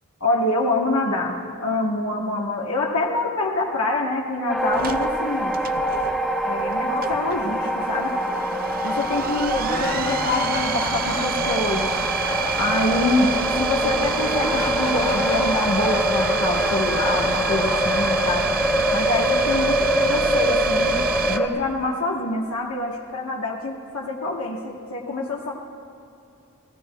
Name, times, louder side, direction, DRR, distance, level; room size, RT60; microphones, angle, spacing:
voice 1, 0.2-5.6 6.4-8.1 8.8-11.9 12.5-13.3 13.6-18.4 18.9-25.5, left 2 dB, 80° left, -1 dB, 1.2 m, -25 dB
sound 1, 4.5-21.5, equal, ahead, 0.8 m, -24 dB
sound 2, 4.7-21.4, right 7 dB, 40° right, 0.4 m, -29 dB
sound 3, 6.6-6.7 7.1-20.1, left 2 dB, 40° left, 1.4 m, -33 dB
28.5 x 16.5 x 2.3 m, 2.8 s
head